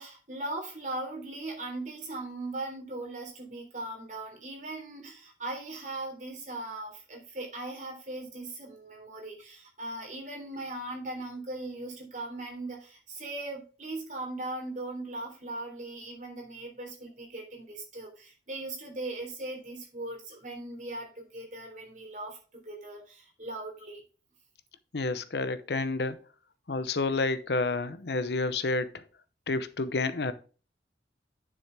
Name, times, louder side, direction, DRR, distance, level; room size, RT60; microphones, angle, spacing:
voice 1, 0.0-24.0, right 2 dB, 45° right, 3.4 m, -39 dB
voice 2, 24.9-26.2 26.7-29.0 29.5-30.3, left 3 dB, 70° left, 0.8 m, -29 dB
10.5 x 6.2 x 3.4 m
head